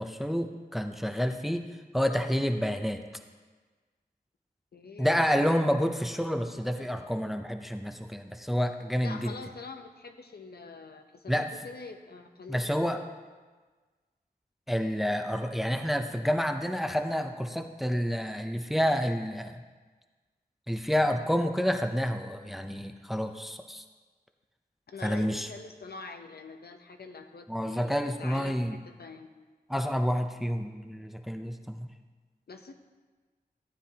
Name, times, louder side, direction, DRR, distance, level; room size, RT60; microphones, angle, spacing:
voice 1, 0.0-1.7 1.9-3.0 5.0-9.3 11.3-11.5 12.5-13.0 14.7-19.6 20.7-23.8 25.0-25.5 27.5-28.8 29.7-31.9, equal, ahead, 6 dB, 0.6 m, -29 dB
voice 2, 4.7-5.6 9.0-13.2 24.9-29.3 32.5-32.7, left 4 dB, 80° left, 5 dB, 0.8 m, -45 dB
15.0 x 9.5 x 2.9 m, 1.4 s
wide cardioid pair, 85°, 16 cm